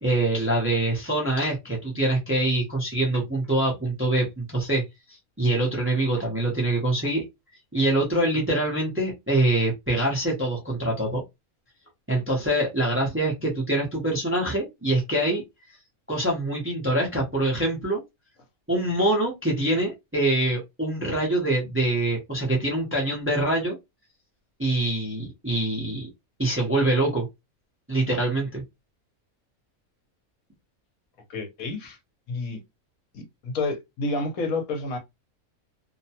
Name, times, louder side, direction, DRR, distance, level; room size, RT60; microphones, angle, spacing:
voice 1, 0.0-4.8 5.4-7.2 7.7-11.2 12.1-15.4 16.1-18.0 18.7-23.8 24.6-26.1 26.4-27.3 27.9-28.6, right 1 dB, 10° right, 0.6 m, -24 dB
voice 2, 31.3-32.0 32.3-32.6 33.1-35.0, left 3 dB, 75° left, 1.2 m, -29 dB
2.7 x 2.2 x 2.8 m
omnidirectional pair, 1.5 m